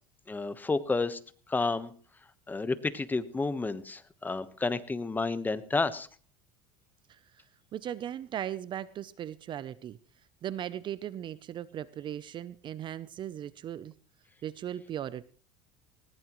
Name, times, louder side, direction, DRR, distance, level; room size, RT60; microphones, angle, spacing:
voice 1, 0.3-1.2 1.5-1.9 2.5-6.1, left 3 dB, 15° left, 13 dB, 1.1 m, -30 dB
voice 2, 7.7-10.0 10.4-13.9 14.4-15.2, right 10 dB, 35° right, 17 dB, 0.6 m, -38 dB
19.5 x 19.0 x 3.1 m, 0.42 s
supercardioid pair, 130°, 14 cm